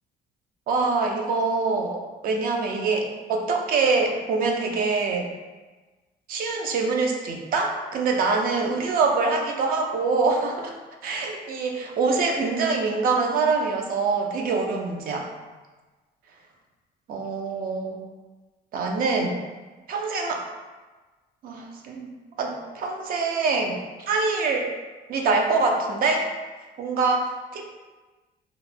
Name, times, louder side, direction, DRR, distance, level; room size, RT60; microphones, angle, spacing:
voice 1, 0.7-5.3 6.3-10.7 11.0-15.3 17.1-18.0 18.7-19.4 19.9-20.4 21.4-22.1 22.4-23.8 24.1-24.7 25.1-26.3 26.8-27.7, right 4 dB, 60° right, 2 dB, 0.5 m, -24 dB
2.4 x 2.0 x 3.2 m, 1.3 s
cardioid pair, 110°, 17 cm